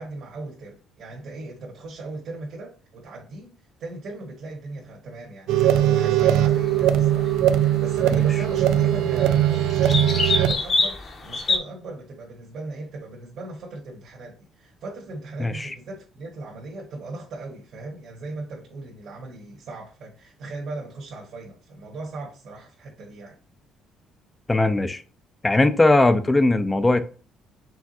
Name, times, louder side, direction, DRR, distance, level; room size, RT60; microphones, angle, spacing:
voice 1, 0.0-3.5 3.8-23.4, right 2 dB, 60° right, 1.3 m, -38 dB
sound 1, 5.5-11.6, left 3 dB, 35° left, 0.8 m, -29 dB
sound 2, 5.5-10.5, right 11 dB, 80° right, 0.3 m, -20 dB
voice 2, 15.4-15.7 24.5-25.0 25.4-27.0, left 2 dB, 10° left, 0.4 m, -19 dB
4.6 x 3.4 x 2.8 m
cardioid pair, 155°, 0 cm